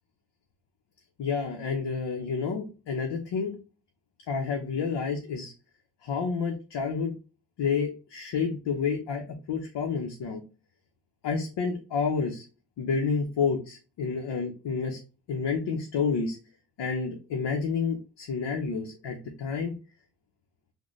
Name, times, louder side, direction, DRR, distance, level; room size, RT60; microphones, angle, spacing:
voice 1, 1.2-3.6 4.3-5.5 6.0-7.1 7.6-10.4 11.2-12.5 12.8-15.0 15.3-16.4 16.8-19.7, left 5 dB, 85° left, 2 dB, 0.7 m, -29 dB
3.8 x 2.1 x 3.0 m, 0.34 s
cardioid pair, 75°, 41 cm